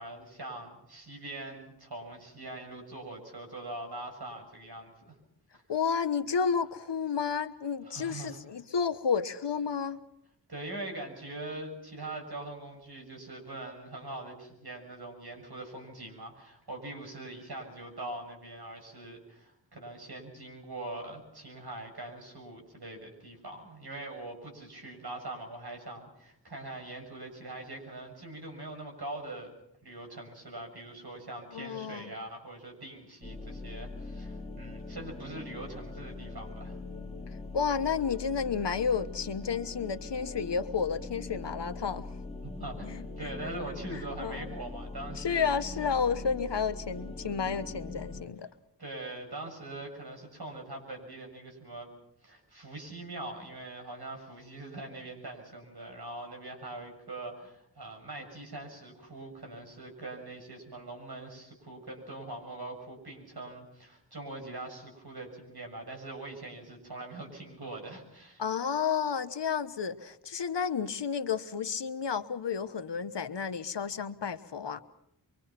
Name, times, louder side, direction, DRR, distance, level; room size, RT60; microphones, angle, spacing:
voice 1, 0.0-5.1 5.5-5.6 7.8-8.4 10.5-29.5 29.8-36.8 42.4-45.4 48.8-51.9 52.2-68.4, right 2 dB, 65° right, 6.9 m, -42 dB
voice 2, 5.7-10.0 31.5-32.1 37.5-42.0 43.9-44.5 45.2-48.5 68.4-74.8, left 6 dB, 75° left, 1.2 m, -31 dB
sound 1, 33.2-48.2, left 3 dB, 15° left, 2.3 m, -42 dB
24.5 x 24.0 x 5.9 m
cardioid pair, 45°, 42 cm